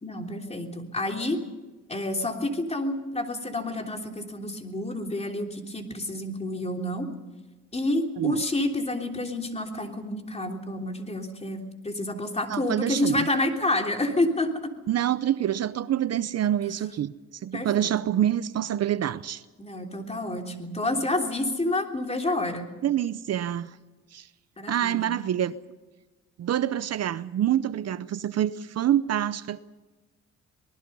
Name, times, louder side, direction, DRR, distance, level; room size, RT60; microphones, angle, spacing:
voice 1, 0.0-1.4 1.9-7.1 7.7-14.7 17.5-17.7 19.6-22.6 24.6-25.1, left 1 dB, 20° left, 3 dB, 3.3 m, -29 dB
voice 2, 12.5-13.3 14.9-17.1 17.4-19.4 22.8-23.7 24.1-24.3 24.7-25.6 26.4-29.6, right 11 dB, 55° right, 15 dB, 0.7 m, -26 dB
26.0 x 19.5 x 5.5 m, 1.2 s
cardioid pair, 90°, 30 cm